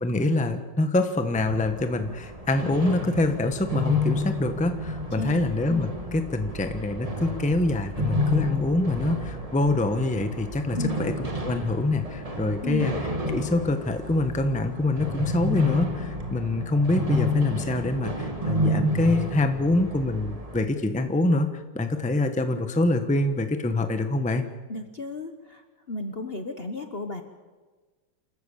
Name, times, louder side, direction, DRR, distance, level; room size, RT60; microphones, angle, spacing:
voice 1, 0.0-12.9 13.3-21.5 21.7-24.4, left 2 dB, 5° left, 7 dB, 1.0 m, -25 dB
sound 1, 1.3-20.6, left 1 dB, 20° right, 1.9 m, -30 dB
voice 2, 5.1-5.6 10.8-11.1 12.6-13.0 24.7-25.6 25.9-27.2, left 2 dB, 35° left, 7 dB, 1.1 m, -33 dB
28.5 x 14.0 x 7.1 m, 1.4 s
omnidirectional pair, 2.0 m